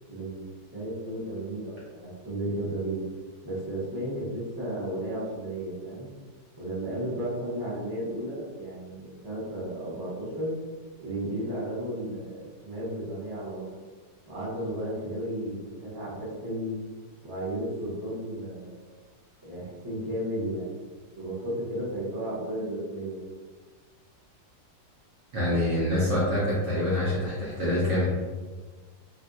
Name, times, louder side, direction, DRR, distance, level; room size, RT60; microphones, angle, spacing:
voice 1, 0.1-3.0 3.4-6.1 6.6-10.5 11.0-13.6 14.3-16.8 17.2-18.9 19.4-20.7 21.1-23.3, right 1 dB, 20° right, -8 dB, 0.6 m, -34 dB
voice 2, 25.3-28.2, left 1 dB, 65° right, -8 dB, 0.7 m, -25 dB
3.2 x 2.7 x 2.4 m, 1.4 s
omnidirectional pair, 2.0 m